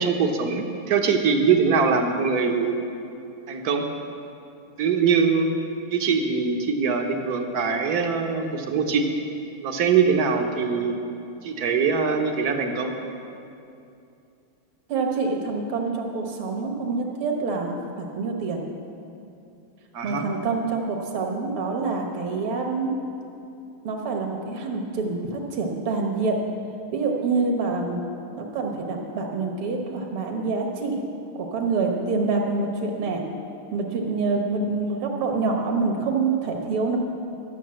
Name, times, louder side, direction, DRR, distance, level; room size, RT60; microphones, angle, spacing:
voice 1, 0.0-2.7 3.5-3.8 4.8-5.5 5.9-9.0 9.6-11.0 11.4-12.9 19.9-20.2, right 5 dB, 60° right, 4 dB, 1.1 m, -22 dB
voice 2, 14.9-18.6 20.0-22.9 23.8-26.4 26.9-28.0 28.4-31.0 31.4-33.2 33.7-37.0, right 4 dB, 75° right, 2 dB, 2.2 m, -26 dB
12.0 x 6.5 x 7.5 m, 2.6 s
omnidirectional pair, 2.4 m